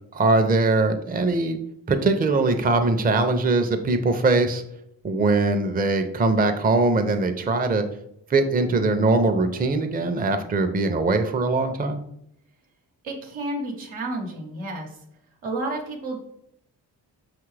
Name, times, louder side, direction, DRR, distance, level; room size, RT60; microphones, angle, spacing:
voice 1, 0.1-1.6 1.9-4.6 5.0-7.9 8.3-12.0, right 3 dB, 20° right, 7 dB, 0.5 m, -21 dB
voice 2, 13.0-14.9 15.4-16.2, right 2 dB, 90° right, 0 dB, 0.9 m, -31 dB
5.4 x 2.5 x 3.2 m, 0.74 s
supercardioid pair, 40°, 46 cm